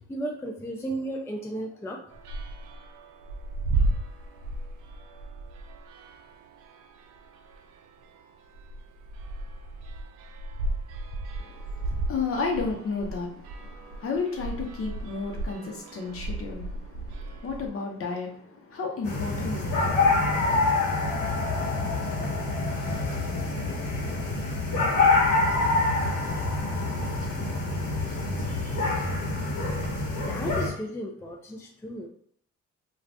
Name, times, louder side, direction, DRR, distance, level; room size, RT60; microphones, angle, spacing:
voice 1, 0.1-2.0 28.5-28.8 30.3-32.1, right 1 dB, 10° left, 0.3 m, -34 dB
sound 1, 2.1-17.7, right 2 dB, 90° right, 0.5 m, -34 dB
voice 2, 11.4-20.8 21.2-21.3, left 4 dB, 50° left, 0.8 m, -33 dB
sound 2, 19.0-30.7, left 3 dB, 85° left, 1.0 m, -26 dB
2.5 x 2.4 x 3.3 m
cardioid pair, 90°, 30 cm